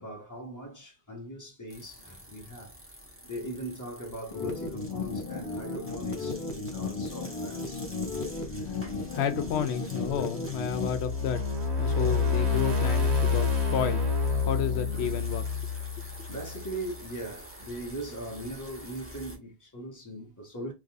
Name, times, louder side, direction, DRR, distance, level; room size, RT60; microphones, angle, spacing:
voice 1, 0.0-2.8 3.2-7.9 14.9-15.2 16.3-20.7, right 1 dB, 15° left, 1.3 m, -40 dB
sound 1, 1.7-19.4, equal, 10° right, 1.6 m, -48 dB
sound 2, 4.3-10.9, left 4 dB, 50° left, 1.3 m, -35 dB
voice 2, 9.1-11.4 11.8-14.1 14.5-15.4, left 8 dB, 85° left, 0.9 m, -31 dB
sound 3, 10.7-16.9, left 4 dB, 85° right, 1.3 m, -28 dB
4.0 x 2.9 x 3.5 m
omnidirectional pair, 1.1 m